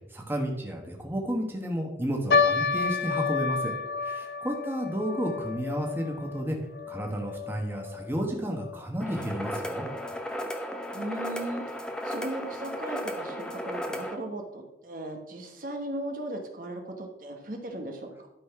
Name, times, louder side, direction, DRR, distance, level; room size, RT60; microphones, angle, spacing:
voice 1, 0.1-3.7 4.0-6.6 6.9-9.9, equal, 10° right, 1 dB, 1.3 m, -32 dB
sound 1, 2.3-8.8 9.1-9.2 9.9-10.2 10.8-10.9 11.2-11.4, left 5 dB, 65° left, 0.6 m, -30 dB
sound 2, 9.0-14.2, equal, 5° left, 0.8 m, -35 dB
voice 2, 10.9-11.6 12.0-18.3, right 1 dB, 50° right, 3 dB, 1.2 m, -37 dB
12.0 x 4.2 x 5.8 m, 0.94 s
head